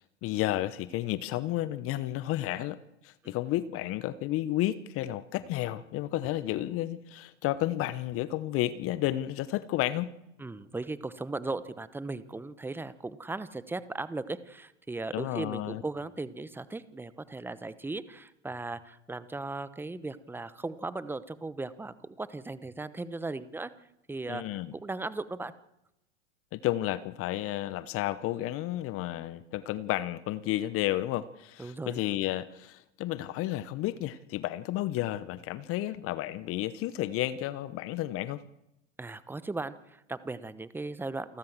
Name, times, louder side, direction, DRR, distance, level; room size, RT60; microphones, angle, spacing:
voice 1, 0.0-2.8 3.0-10.1 15.1-15.8 24.3-24.7 26.5-38.4, left 14 dB, 40° left, 17 dB, 0.9 m, -32 dB
voice 2, 10.4-23.7 24.1-24.4 24.8-25.5 31.6-32.0 39.0-41.4, right 3 dB, 5° right, 15 dB, 1.0 m, -37 dB
28.5 x 12.5 x 7.5 m, 0.86 s
hypercardioid pair, 115°, 36 cm